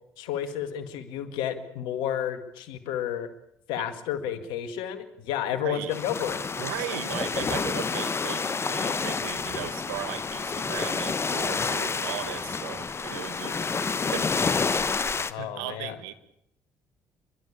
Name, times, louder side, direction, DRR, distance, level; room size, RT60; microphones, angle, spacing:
voice 1, 0.2-3.3 3.7-6.4 15.3-16.0, left 10 dB, 80° left, 2.1 m, -31 dB
voice 2, 5.5-6.0 6.6-13.7 14.1-14.4 15.1-16.1, right 13 dB, 90° right, 1.3 m, -37 dB
sound 1, 5.9-15.3, left 5 dB, 35° left, 1.1 m, -29 dB
28.5 x 12.0 x 8.5 m
supercardioid pair, 60°, 8 cm